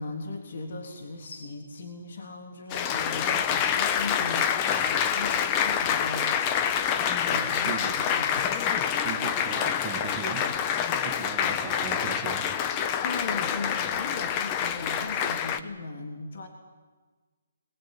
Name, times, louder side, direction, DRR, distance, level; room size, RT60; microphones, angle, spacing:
voice 1, 0.0-6.9 7.3-8.6 13.0-16.5, left 3 dB, 60° left, 3 dB, 3.4 m, -38 dB
Applause, 2.7-15.6, left 8 dB, 25° left, 1.1 m, -27 dB
voice 2, 7.3-8.0 9.0-10.6 11.0-12.6, right 7 dB, 20° right, 4 dB, 2.1 m, -38 dB
21.5 x 21.5 x 10.0 m, 1.4 s
hypercardioid pair, 155°, 0 cm